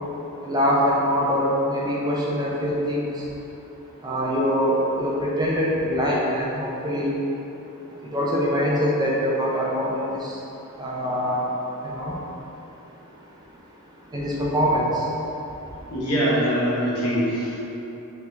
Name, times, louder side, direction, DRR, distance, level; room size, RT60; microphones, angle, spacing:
voice 1, 0.4-3.1 4.0-7.1 8.1-10.2 10.8-11.5 11.8-12.1 14.1-14.9, equal, 20° right, -5 dB, 0.4 m, -23 dB
voice 2, 15.9-17.6, equal, 80° left, -8 dB, 1.1 m, -23 dB
3.6 x 3.1 x 3.3 m, 3.0 s
head